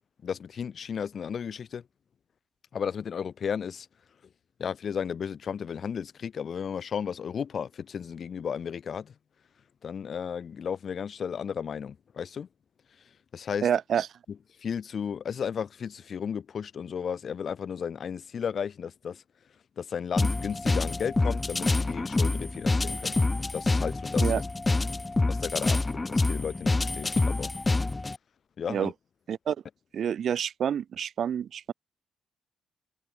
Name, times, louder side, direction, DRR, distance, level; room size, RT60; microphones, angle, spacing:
voice 1, 0.2-1.8 2.7-3.9 4.6-9.1 9.8-12.5 13.3-13.7 14.6-19.2 19.8-23.1 23.5-24.4 25.3-27.5 28.6-28.9, left 7 dB, 50° left, 2.3 m, -34 dB
voice 2, 13.6-14.1 24.2-24.4 28.7-28.9 29.3-29.6 29.9-31.7, right 8 dB, 60° right, 0.7 m, -28 dB
sound 1, 20.2-28.2, left 2 dB, 20° left, 0.4 m, -26 dB
cardioid pair, 90°, 0 cm